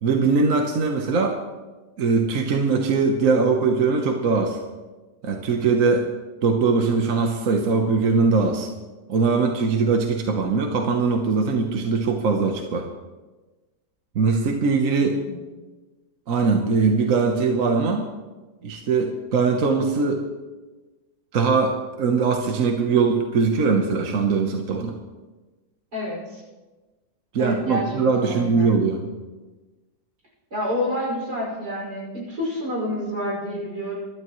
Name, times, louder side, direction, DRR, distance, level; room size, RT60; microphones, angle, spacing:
voice 1, 0.0-1.4 2.0-4.6 5.2-6.1 6.4-8.7 9.1-12.9 14.1-15.2 16.3-18.1 18.6-20.2 21.3-24.9 27.3-29.1, right 4 dB, 60° right, 3 dB, 1.4 m, -21 dB
voice 2, 14.9-15.5 25.9-26.4 27.4-28.7 30.5-34.0, left 1 dB, 80° right, -4 dB, 6.2 m, -29 dB
24.0 x 12.5 x 3.1 m, 1.2 s
omnidirectional pair, 1.7 m